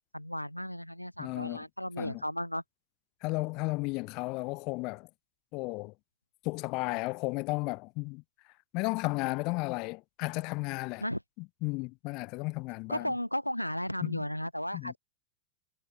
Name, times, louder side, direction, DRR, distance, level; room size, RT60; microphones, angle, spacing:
voice 1, 0.0-2.6 11.0-11.2 12.9-15.0, equal, 90° left, 6.6 m, -34 dB
voice 2, 1.2-1.6 2.0-2.2 3.2-5.1 5.5-5.9 6.4-8.2 8.7-11.0 11.6-13.1 14.0-14.2 14.7-14.9, left 26 dB, 40° left, 3.7 m, -34 dB
figure-of-eight pair, 90°, 0 cm